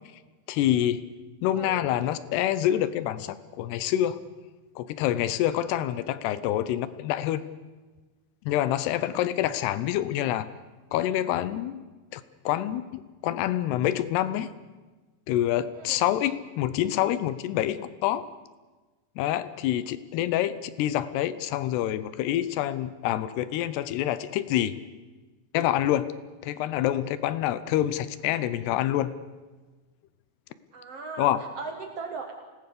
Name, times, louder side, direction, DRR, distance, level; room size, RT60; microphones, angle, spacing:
voice 1, 0.5-1.0 1.4-4.2 4.8-7.4 8.5-10.5 10.9-11.8 12.1-14.5 15.3-18.3 19.2-24.8 25.5-26.1 26.4-29.1 31.2-31.4, left 12 dB, 75° left, 15 dB, 2.7 m, -27 dB
voice 2, 1.5-1.9 15.7-16.0 30.7-32.3, right 4 dB, 90° right, 4 dB, 1.3 m, -38 dB
26.5 x 18.5 x 6.8 m, 1.3 s
omnidirectional pair, 5.3 m